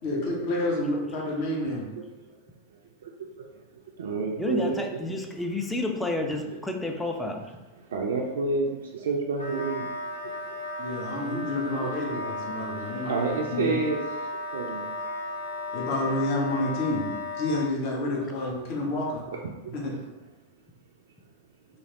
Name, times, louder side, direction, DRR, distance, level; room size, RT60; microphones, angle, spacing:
voice 1, 0.0-1.9 10.8-13.8 15.7-17.1 17.3-19.2 19.7-19.9, left 2 dB, 45° left, -2 dB, 0.8 m, -29 dB
voice 2, 1.7-2.0 3.0-3.5 4.0-5.0 6.2-6.6 7.8-9.9 10.2-10.4 11.3-11.5 11.8-11.9 12.2-12.3 12.7-14.0 14.5-14.9 18.2-18.4 19.6-19.7, right 4 dB, 60° right, 0 dB, 0.3 m, -30 dB
voice 3, 4.4-7.4, left 2 dB, 5° left, 3 dB, 0.4 m, -30 dB
Wind instrument woodwind instrument, 9.3-17.7, left 2 dB, 90° left, 0.5 m, -35 dB
2.9 x 2.6 x 2.9 m, 1.1 s
figure-of-eight pair, 90°, 0 cm